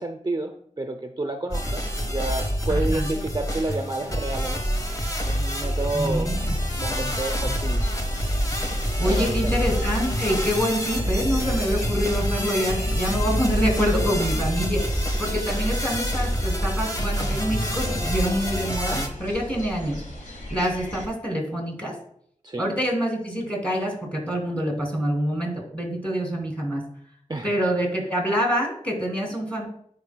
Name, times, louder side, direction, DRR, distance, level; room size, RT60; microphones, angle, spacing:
voice 1, 0.0-4.6 5.2-6.3 6.8-7.9 9.1-9.6 22.4-22.7 27.3-27.6, right 2 dB, 30° right, 5 dB, 0.5 m, -30 dB
sound 1, 1.5-19.1, equal, 25° left, 1.2 m, -26 dB
voice 2, 2.7-3.1 5.9-6.5 9.0-21.9 22.6-26.8 27.4-29.7, equal, 10° left, 0 dB, 2.7 m, -26 dB
sound 2, 6.3-21.1, equal, 80° left, 1.5 m, -37 dB
10.5 x 4.6 x 2.2 m, 0.67 s
wide cardioid pair, 50°, 13 cm